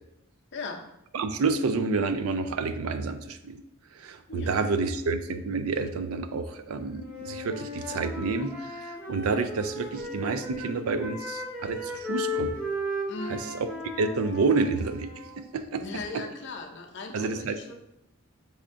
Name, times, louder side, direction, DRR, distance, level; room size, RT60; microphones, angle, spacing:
voice 1, 0.5-0.8 4.3-4.6 13.1-13.4 15.8-17.7, left 3 dB, 55° left, 2 dB, 0.6 m, -38 dB
voice 2, 1.1-3.6 3.9-12.6 13.3-13.4 14.0-15.1 15.4-15.8 17.1-17.6, right 4 dB, 85° right, 9 dB, 0.4 m, -29 dB
Wind instrument woodwind instrument, 7.0-10.7 11.0-15.4, left 1 dB, 10° right, 1.1 m, -35 dB
5.5 x 3.5 x 2.6 m, 0.86 s
head